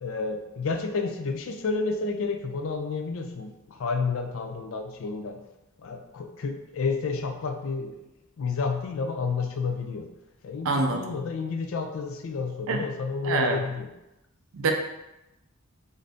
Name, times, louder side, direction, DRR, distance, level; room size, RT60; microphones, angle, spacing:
voice 1, 0.0-5.4 5.8-7.9 8.4-10.1 10.4-13.9, left 4 dB, 60° left, 5 dB, 0.3 m, -30 dB
voice 2, 10.6-11.0 12.7-12.8 13.2-13.6 14.5-14.7, right 3 dB, 65° right, 3 dB, 0.4 m, -25 dB
2.7 x 2.5 x 3.3 m, 0.93 s
head